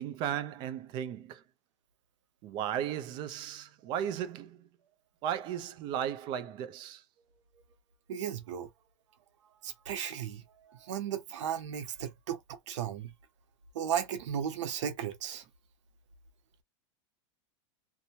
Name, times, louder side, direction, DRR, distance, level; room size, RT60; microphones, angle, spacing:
voice 1, 0.0-1.4 2.4-4.6 5.2-7.0, right 9 dB, 30° right, 0.4 m, -35 dB
voice 2, 8.1-8.7 9.6-10.4 10.8-12.4 12.7-13.1 13.7-15.4, right 9 dB, 80° right, 0.8 m, -35 dB
2.7 x 2.1 x 2.9 m
supercardioid pair, 160°, 15 cm